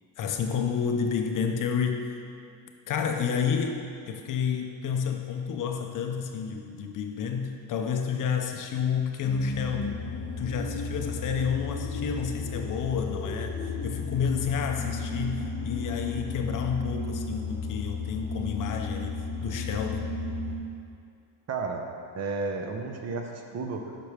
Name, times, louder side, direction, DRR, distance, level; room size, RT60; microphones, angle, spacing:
voice 1, 0.2-2.1 2.9-10.0 10.4-20.1, left 6 dB, 45° left, 4 dB, 0.5 m, -30 dB
sound 1, 9.2-20.6, left 4 dB, 30° left, 0.9 m, -34 dB
voice 2, 21.5-21.8 22.1-24.0, right 4 dB, 35° right, 3 dB, 0.6 m, -32 dB
5.8 x 4.8 x 4.8 m, 2.5 s
cardioid pair, 135°, 44 cm